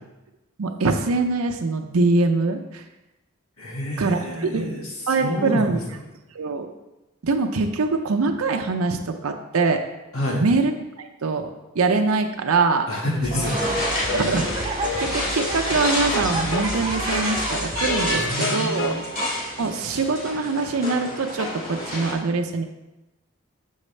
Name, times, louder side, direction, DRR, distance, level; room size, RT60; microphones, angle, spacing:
voice 1, 0.6-2.8 4.0-4.7 5.1-5.8 6.3-6.7 7.2-9.8 10.4-10.7 11.0-11.5 11.7-12.9 13.8-19.0 19.6-22.6, right 3 dB, 90° right, 5 dB, 0.6 m, -23 dB
voice 2, 3.6-4.8 5.2-5.8 10.1-10.4 12.9-13.8 18.1-19.0, left 1 dB, 80° left, -2 dB, 1.7 m, -28 dB
sound 1, 13.2-18.2, right 2 dB, 20° right, 0.6 m, -30 dB
sound 2, 13.4-22.1, left 1 dB, 40° left, 2.2 m, -29 dB
sound 3, 14.1-19.0, left 2 dB, 55° left, 0.4 m, -31 dB
7.1 x 6.4 x 3.2 m, 1.0 s
head